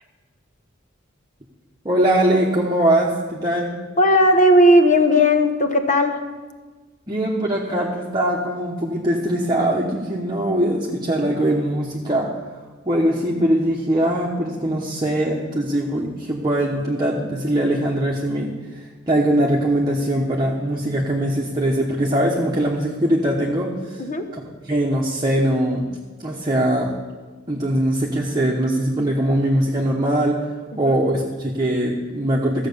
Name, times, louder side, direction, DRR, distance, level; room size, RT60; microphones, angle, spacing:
voice 1, 1.8-3.7 7.1-12.3 12.9-18.5 19.1-24.0 24.3-24.4 24.7-25.9 26.2-26.9 27.5-30.4 30.8-32.7, right 1 dB, 20° right, -3 dB, 1.1 m, -21 dB
voice 2, 4.0-6.2 24.0-24.3 30.8-31.0, equal, 40° left, 7 dB, 1.1 m, -16 dB
14.0 x 7.4 x 6.9 m, 1.3 s
head